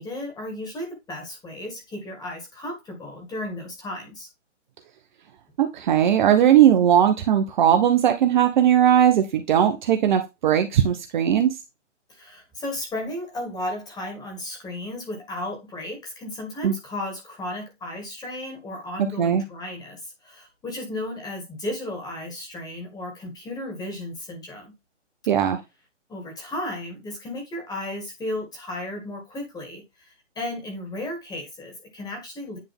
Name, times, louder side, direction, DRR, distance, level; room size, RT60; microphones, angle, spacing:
voice 1, 0.0-4.3 12.1-24.7 26.1-32.6, left 1 dB, 10° left, 2.2 m, -34 dB
voice 2, 5.6-11.5 16.6-16.7 19.2-19.4 25.3-25.6, right 10 dB, 40° right, 0.9 m, -18 dB
9.7 x 3.5 x 3.5 m
hypercardioid pair, 140°, 37 cm